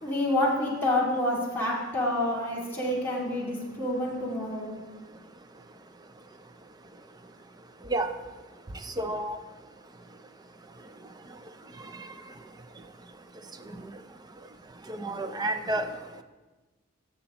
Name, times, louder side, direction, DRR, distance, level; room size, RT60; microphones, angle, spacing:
voice 1, 0.0-4.7, left 1 dB, 10° left, -6 dB, 2.2 m, -28 dB
voice 2, 9.0-9.4 14.9-15.9, right 1 dB, 20° right, 8 dB, 0.5 m, -29 dB
14.0 x 6.8 x 2.9 m, 1.2 s
head